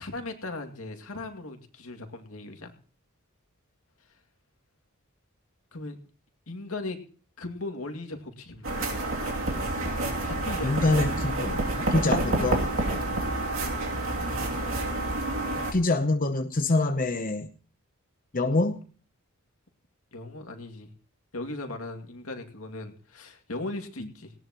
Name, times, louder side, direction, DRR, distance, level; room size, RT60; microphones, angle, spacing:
voice 1, 0.0-2.7 5.7-6.0 6.5-7.0 7.4-8.9 10.2-10.8 12.7-13.2 20.1-20.9 21.3-24.3, left 2 dB, 80° left, 5 dB, 2.3 m, -38 dB
sound 1, 8.6-15.7, right 2 dB, 65° right, 2.8 m, -28 dB
voice 2, 10.6-12.8 15.7-17.5 18.3-18.8, left 2 dB, 40° left, 6 dB, 0.8 m, -25 dB
18.5 x 17.5 x 3.0 m, 0.41 s
head